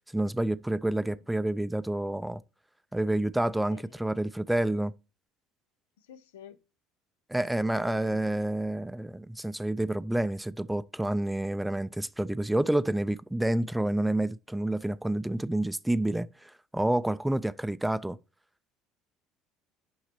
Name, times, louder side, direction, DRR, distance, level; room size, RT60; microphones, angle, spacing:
voice 1, 0.1-2.4 2.9-4.9 7.3-18.2, right 1 dB, 5° right, 0.5 m, -29 dB
voice 2, 0.8-1.2 3.7-4.1 6.0-6.6 7.7-8.4, left 9 dB, 80° left, 0.6 m, -51 dB
5.9 x 5.5 x 5.9 m
hypercardioid pair, 65°, 0 cm